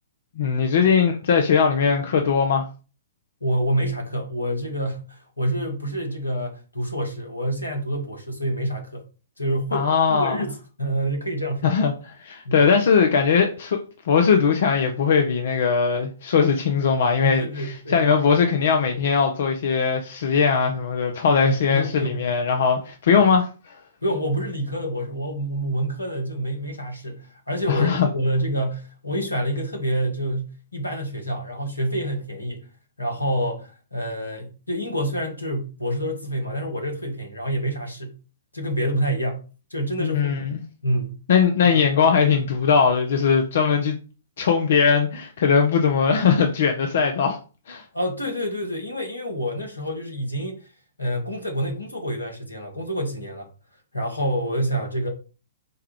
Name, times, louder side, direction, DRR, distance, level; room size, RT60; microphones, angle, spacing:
voice 1, 0.4-2.6 9.7-10.4 11.6-11.9 12.2-13.8 14.0-17.5 17.9-23.7 27.7-28.1 40.0-40.6 41.3-44.0 44.4-47.4 47.7-47.8, left 6 dB, 55° left, 0.6 m, -20 dB
voice 2, 3.4-9.1 9.4-11.8 12.4-12.7 17.2-18.0 21.5-22.3 23.1-23.2 24.0-32.7 33.0-38.2 38.5-39.4 39.7-40.5 40.8-41.2 41.6-41.8 47.9-50.7 51.0-53.5 53.9-55.1, right 1 dB, 85° left, 1.3 m, -27 dB
4.6 x 2.3 x 4.7 m
figure-of-eight pair, 115°, 0 cm